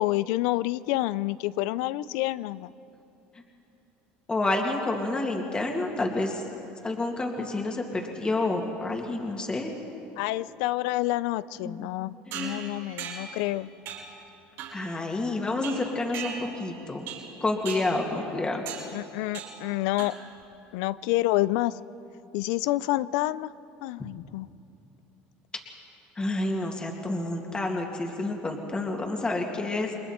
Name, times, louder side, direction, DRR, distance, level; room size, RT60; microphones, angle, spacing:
voice 1, 0.0-2.7 10.2-13.7 18.9-20.1 20.7-21.8 22.3-23.5 23.8-24.5, left 17 dB, 80° left, 18 dB, 0.5 m, -28 dB
voice 2, 4.3-6.4 6.8-9.7 11.6-11.9 12.3-12.7 14.7-17.1 17.4-18.6 26.2-29.9, left 2 dB, 20° left, 1 dB, 2.4 m, -29 dB
sound 1, 12.3-13.4 13.9-14.2 14.6-14.9 15.6-16.7 17.1-17.4 17.7-18.0 18.7-19.0 19.3-19.7 20.0-20.4, right 7 dB, 70° right, 6.5 m, -39 dB
29.0 x 21.5 x 4.4 m, 2.8 s
supercardioid pair, 95°, 5 cm